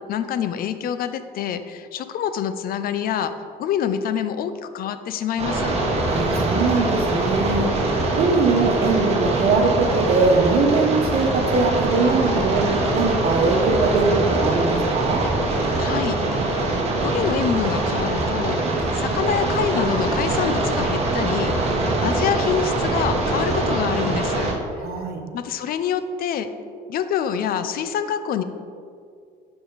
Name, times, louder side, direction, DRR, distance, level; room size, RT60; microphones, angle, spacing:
voice 1, 0.1-3.3 3.6-5.8 15.8-16.5 17.0-24.5 25.3-26.5 26.9-28.4, left 8 dB, 60° left, 11 dB, 0.6 m, -26 dB
sound 1, 5.4-24.5, right 2 dB, 40° right, 1.7 m, -23 dB
voice 2, 6.0-7.7 8.2-15.2 24.8-25.2, right 3 dB, 65° right, 2 dB, 1.3 m, -21 dB
11.0 x 4.9 x 4.1 m, 2.3 s
cardioid pair, 110°, 17 cm